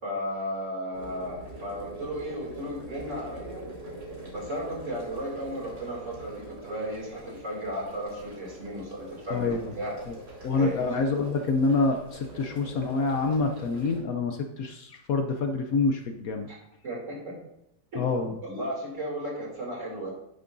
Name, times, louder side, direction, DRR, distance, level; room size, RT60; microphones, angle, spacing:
voice 1, 0.0-3.6 4.3-9.9 10.5-11.0 16.5-16.6 16.8-17.4 17.9-20.1, equal, 45° right, -3 dB, 3.0 m, -35 dB
sound 1, 0.9-14.0, right 1 dB, 80° right, 4.4 m, -43 dB
voice 2, 9.3-9.7 10.4-16.5 18.0-18.4, left 3 dB, 65° left, 5 dB, 1.0 m, -27 dB
10.5 x 9.3 x 2.6 m, 0.82 s
omnidirectional pair, 1.8 m